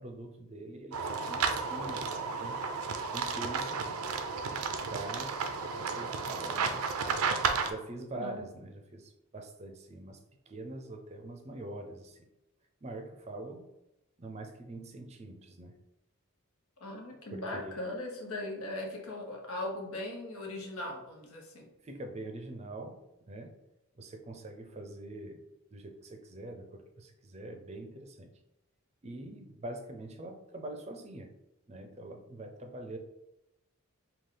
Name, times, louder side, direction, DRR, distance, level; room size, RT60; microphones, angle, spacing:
voice 1, 0.0-2.6 3.1-3.9 4.9-5.4 5.7-6.9 7.4-10.2 10.5-12.2 12.8-13.7 14.2-15.8 17.3-17.8 21.8-23.0 23.3-23.5 23.9-25.4 25.7-28.3 29.0-31.3 31.7-33.0, right 2 dB, 30° right, 4 dB, 0.5 m, -44 dB
sound 1, 0.9-7.7, right 5 dB, 90° right, 0.5 m, -33 dB
voice 2, 8.2-8.5 16.8-21.7, left 1 dB, 90° left, 0 dB, 1.1 m, -39 dB
4.9 x 2.4 x 3.7 m, 0.93 s
head